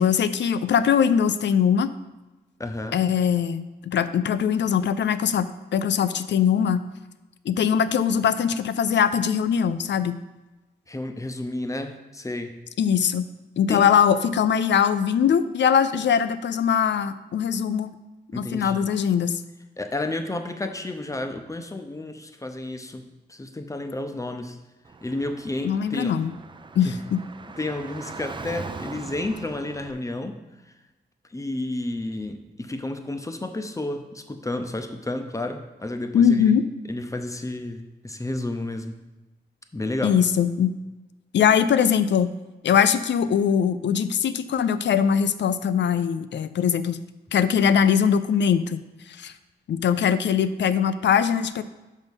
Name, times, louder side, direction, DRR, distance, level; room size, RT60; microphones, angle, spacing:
voice 1, 0.0-1.9 2.9-6.8 7.5-10.2 12.8-13.3 13.6-17.9 18.4-19.4 25.6-26.3 26.8-27.2 36.1-36.7 40.0-40.8 41.3-42.3 42.6-47.0 47.3-48.8 49.2-49.3 49.7-51.6, left 8 dB, 85° left, 13 dB, 0.4 m, -21 dB
voice 2, 2.6-3.0 10.9-12.6 13.7-13.9 18.3-18.9 19.8-24.6 25.0-26.2 26.9-27.0 27.6-30.4 30.7-30.8 31.3-36.5 36.9-39.0 39.7-40.2, left 2 dB, 20° left, 6 dB, 0.6 m, -31 dB
Car / Traffic noise roadway noise, 24.9-29.9, right 4 dB, 25° right, 0.4 m, -40 dB
6.3 x 5.3 x 5.3 m, 1.1 s
wide cardioid pair, 110°, 18 cm